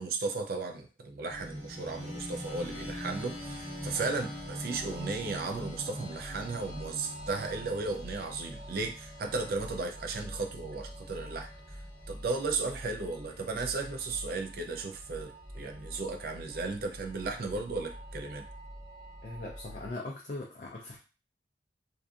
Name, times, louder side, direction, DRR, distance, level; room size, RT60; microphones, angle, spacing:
voice 1, 0.0-11.5 12.1-18.5, right 3 dB, 50° right, 5 dB, 0.4 m, -35 dB
sound 1, 1.3-19.9, equal, 15° right, 1.3 m, -43 dB
voice 2, 19.2-21.0, left 2 dB, 45° left, -1 dB, 0.4 m, -40 dB
2.5 x 2.4 x 2.3 m, 0.35 s
head